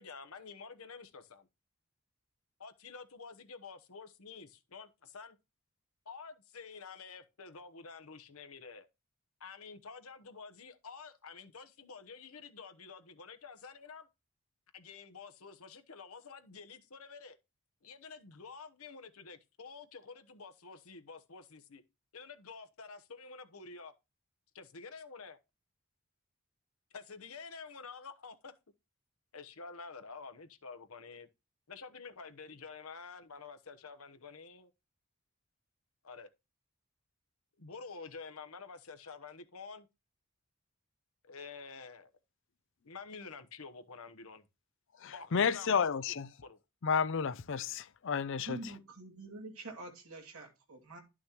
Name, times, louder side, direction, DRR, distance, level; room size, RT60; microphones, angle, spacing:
voice 1, 0.0-1.5 2.6-5.4 6.0-8.9 9.4-14.1 14.7-17.4 17.8-21.8 22.1-23.9 24.5-25.4 26.9-28.5 29.3-31.3 31.7-34.7 36.0-36.3 37.6-39.9 41.2-42.1 42.8-44.4 45.1-46.6, left 5 dB, 80° left, 1.1 m, -49 dB
voice 2, 45.0-46.3 46.8-48.7, left 6 dB, 60° left, 0.5 m, -31 dB
voice 3, 48.4-51.0, right 2 dB, 80° right, 2.5 m, -46 dB
11.5 x 6.2 x 3.0 m
head